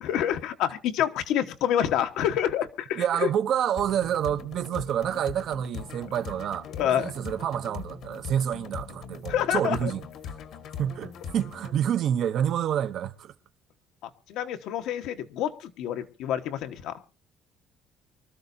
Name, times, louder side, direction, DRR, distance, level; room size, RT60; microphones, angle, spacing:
voice 1, 0.0-3.0 6.7-7.1 9.3-9.9 14.3-17.0, left 10 dB, 70° left, 1.2 m, -27 dB
voice 2, 3.0-6.7 7.0-10.0 10.8-13.3, right 9 dB, 50° right, 0.7 m, -28 dB
sound 1, 3.8-11.8, left 6 dB, 55° left, 1.3 m, -41 dB
24.5 x 13.5 x 2.7 m
cardioid pair, 160°, 0 cm